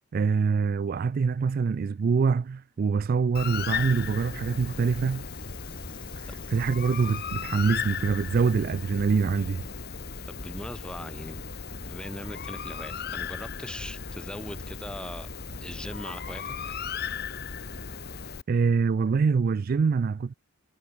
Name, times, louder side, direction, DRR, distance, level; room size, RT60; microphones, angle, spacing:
voice 1, 0.1-5.2 6.5-9.6 18.5-20.3, right 5 dB, 45° right, 0.3 m, -25 dB
Bird, 3.3-18.4, left 6 dB, 50° left, 1.4 m, -36 dB
sound 1, 3.6-8.9, left 2 dB, 25° left, 1.2 m, -52 dB
voice 2, 10.3-11.4 11.7-15.3 15.6-16.5, left 1 dB, 5° left, 1.2 m, -40 dB
head